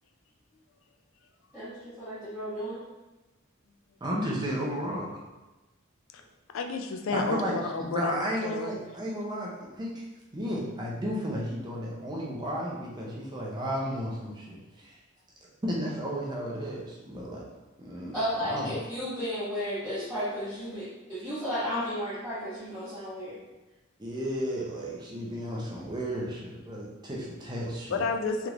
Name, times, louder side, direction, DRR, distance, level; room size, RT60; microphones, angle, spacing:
voice 1, 1.5-2.8 18.1-23.4, equal, ahead, -17 dB, 1.2 m, -33 dB
voice 2, 4.0-5.1 7.1-7.5 7.9-9.5 9.7-10.0 10.3-15.0 15.6-17.4 17.8-18.7 24.0-28.0, equal, 20° right, -4 dB, 0.6 m, -33 dB
voice 3, 6.5-8.7 27.7-28.5, left 4 dB, 75° left, 5 dB, 0.4 m, -31 dB
3.4 x 2.9 x 2.4 m, 1.1 s
head